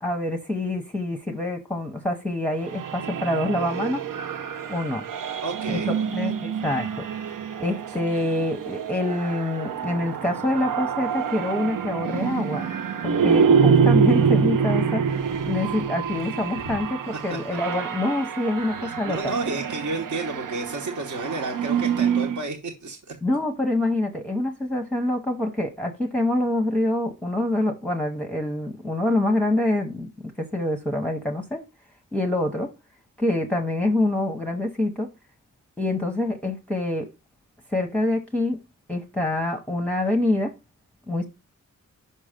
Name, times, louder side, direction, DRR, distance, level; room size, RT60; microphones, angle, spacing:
voice 1, 0.0-4.0 4.7-5.0 5.7-5.8 6.1-7.1 7.6-12.7 13.0-15.0 15.4-19.2 23.2-31.6 32.1-32.7 33.2-35.1 35.8-37.1 37.7-38.6 38.9-40.5 41.1-41.2, left 1 dB, 5° left, 0.7 m, -26 dB
sound 1, 2.6-22.4, right 6 dB, 90° right, 0.6 m, -26 dB
voice 2, 5.4-6.3 16.6-16.8 17.3-17.4 18.8-23.0, right 2 dB, 65° right, 1.1 m, -31 dB
5.6 x 5.4 x 5.0 m
wide cardioid pair, 135°, 31 cm